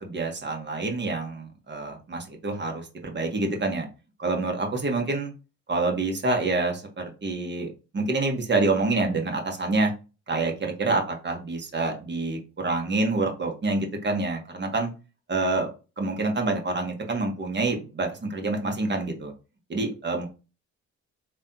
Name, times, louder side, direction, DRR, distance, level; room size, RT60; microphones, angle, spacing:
voice 1, 0.0-3.9 4.2-5.3 5.7-9.9 10.3-14.9 15.3-15.7 16.0-19.3 19.7-20.3, right 3 dB, 35° right, 2 dB, 1.4 m, -27 dB
3.8 x 3.3 x 2.8 m, 0.31 s
cardioid pair, 90°, 30 cm